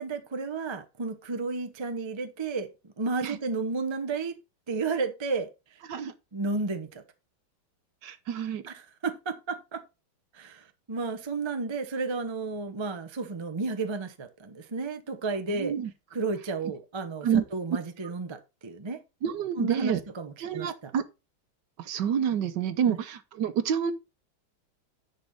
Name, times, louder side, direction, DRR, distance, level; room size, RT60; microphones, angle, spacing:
voice 1, 0.0-4.4 4.7-5.5 6.3-7.0 8.7-9.8 10.3-15.7 16.1-19.0 19.5-20.9 22.8-23.0, right 3 dB, 45° right, 0.3 m, -32 dB
voice 2, 8.0-8.6 15.5-15.9 17.2-17.4 19.2-20.0 20.4-21.0 21.8-23.9, right 8 dB, 65° right, 1.4 m, -28 dB
10.5 x 4.3 x 5.1 m
omnidirectional pair, 2.2 m